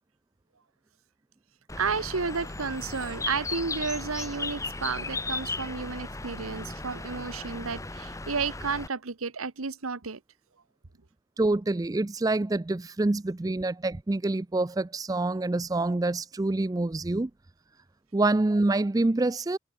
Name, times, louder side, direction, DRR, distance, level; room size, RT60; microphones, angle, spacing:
Bird, 1.7-8.9, left 3 dB, 15° left, 1.6 m, -36 dB
voice 1, 1.7-10.2, right 5 dB, 90° right, 1.2 m, -32 dB
voice 2, 11.4-17.3 18.1-19.6, right 2 dB, 15° right, 0.4 m, -26 dB
head